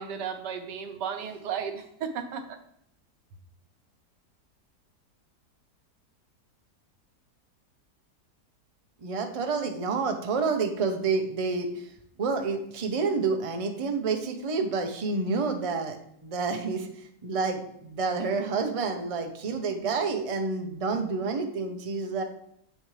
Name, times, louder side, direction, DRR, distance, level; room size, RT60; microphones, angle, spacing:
voice 1, 0.0-2.6, right 7 dB, 90° right, 6 dB, 1.5 m, -34 dB
voice 2, 9.0-11.9 12.2-22.2, right 4 dB, 30° right, 4 dB, 0.7 m, -29 dB
8.0 x 6.4 x 3.2 m, 0.71 s
omnidirectional pair, 1.8 m